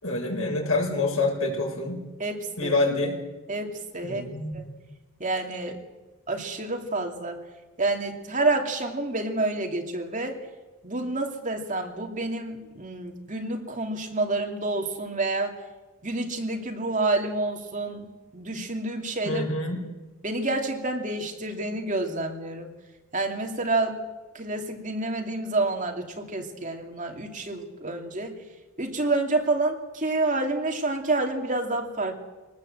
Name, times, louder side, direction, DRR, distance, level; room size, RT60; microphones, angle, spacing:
voice 1, 0.0-2.0 2.6-3.2 4.0-4.7 19.2-19.8, left 2 dB, 75° left, 1 dB, 6.7 m, -26 dB
voice 2, 2.2-2.7 3.5-4.2 4.5-4.6 5.2-5.8 6.3-7.4 7.8-10.4 10.8-15.6 16.0-18.1 18.3-19.4 20.2-22.7 23.1-24.0 24.3-28.4 28.8-32.1, right 2 dB, 35° right, 3 dB, 2.7 m, -28 dB
22.5 x 19.0 x 8.0 m, 1.2 s
head